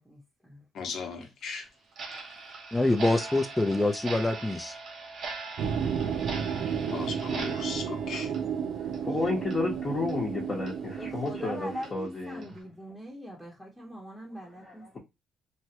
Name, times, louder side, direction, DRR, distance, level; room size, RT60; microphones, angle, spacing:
voice 1, 0.0-0.6 11.0-15.0, equal, 5° right, 0.9 m, -42 dB
voice 2, 0.7-1.7 6.7-8.3, left 5 dB, 70° left, 0.8 m, -37 dB
Clock, 1.9-9.1 9.4-9.6 10.1-10.2 10.7-10.8 11.2-11.3 11.8-11.9 12.4-12.6, right 3 dB, 60° right, 0.9 m, -41 dB
voice 3, 2.7-4.7, left 2 dB, 10° left, 0.5 m, -25 dB
sound 1, 5.6-11.9, right 7 dB, 75° right, 0.4 m, -32 dB
voice 4, 9.0-12.5 14.6-15.0, left 3 dB, 35° left, 1.0 m, -32 dB
3.1 x 2.2 x 2.8 m
cardioid pair, 90°, 0 cm